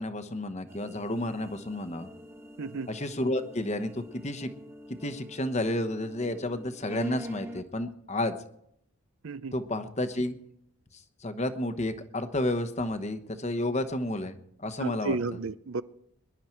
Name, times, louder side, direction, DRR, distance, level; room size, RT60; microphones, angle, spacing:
voice 1, 0.0-2.1 2.9-4.5 5.0-8.4 9.5-10.4 10.9-15.2, left 1 dB, 30° left, 10 dB, 1.0 m, -31 dB
sound 1, 0.7-7.6, equal, 10° right, 1.0 m, -45 dB
voice 2, 2.6-2.9 9.2-9.5 14.8-15.8, right 3 dB, 65° right, 15 dB, 0.6 m, -32 dB
22.0 x 11.5 x 4.5 m, 0.73 s
head